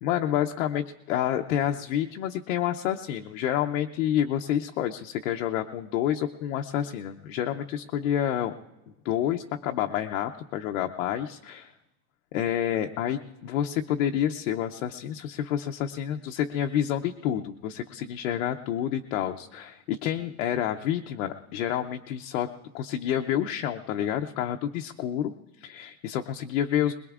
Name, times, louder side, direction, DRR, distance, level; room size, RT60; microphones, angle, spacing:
voice 1, 0.0-8.5 9.0-11.7 12.3-26.9, left 10 dB, 55° left, 4 dB, 0.6 m, -29 dB
22.0 x 21.5 x 2.4 m, 1.1 s
supercardioid pair, 175°, 48 cm